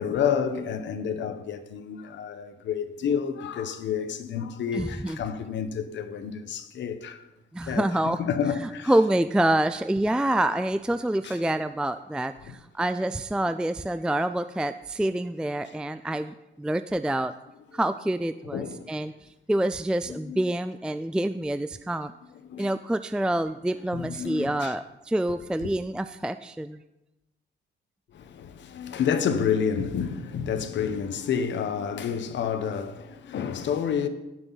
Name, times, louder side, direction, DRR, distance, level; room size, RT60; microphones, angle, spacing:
voice 1, 0.0-7.2 7.7-8.9 11.2-11.4 12.5-12.6 18.5-18.9 20.1-20.4 22.4-22.7 23.9-24.7 25.6-25.7 28.1-34.1, left 7 dB, 65° left, 1.0 m, -29 dB
voice 2, 4.7-5.2 7.5-8.2 8.6-17.3 17.7-22.1 22.6-26.8, right 1 dB, 5° right, 0.3 m, -27 dB
18.0 x 6.0 x 4.1 m
cardioid pair, 90°, 20 cm